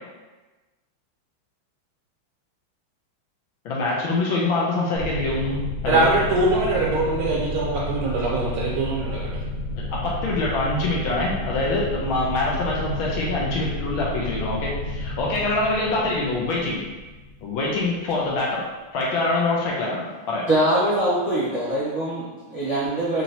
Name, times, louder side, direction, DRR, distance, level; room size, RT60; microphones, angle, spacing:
voice 1, 3.6-6.1 10.2-16.8 17.4-18.6 18.9-20.4, left 2 dB, 75° left, -4 dB, 1.5 m, -25 dB
sound 1, 4.9-18.2, left 1 dB, 65° right, 0.6 m, -31 dB
voice 2, 5.9-9.2, right 2 dB, 80° right, -5 dB, 1.5 m, -22 dB
voice 3, 20.5-23.2, right 1 dB, 20° left, -13 dB, 1.4 m, -23 dB
4.5 x 2.9 x 2.7 m, 1.2 s
omnidirectional pair, 2.4 m